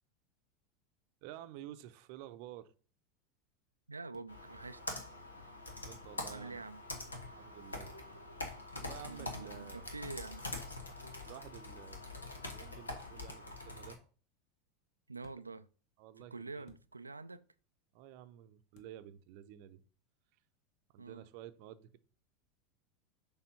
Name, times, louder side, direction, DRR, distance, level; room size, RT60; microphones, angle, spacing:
voice 1, 1.2-2.7 5.8-6.6 7.4-7.9 8.7-9.9 11.2-12.0 12.5-14.0 16.0-16.6 17.9-19.8 20.9-22.0, right 12 dB, 55° right, 0.7 m, -51 dB
voice 2, 3.9-4.8 6.3-6.8 9.1-10.5 15.1-15.7 16.2-17.4 21.0-21.3, right 3 dB, 85° right, 0.4 m, -46 dB
sound 1, 4.1-4.3 6.0-6.2 8.1-8.3 10.1-10.4 11.6-11.8 13.2-13.7 15.2-15.4 16.6-16.9 18.7-19.0, left 4 dB, 55° left, 1.2 m, -60 dB
Computer keyboard, 4.3-13.9, left 2 dB, 85° left, 1.3 m, -45 dB
6.8 x 3.5 x 5.6 m
figure-of-eight pair, 80°, 0 cm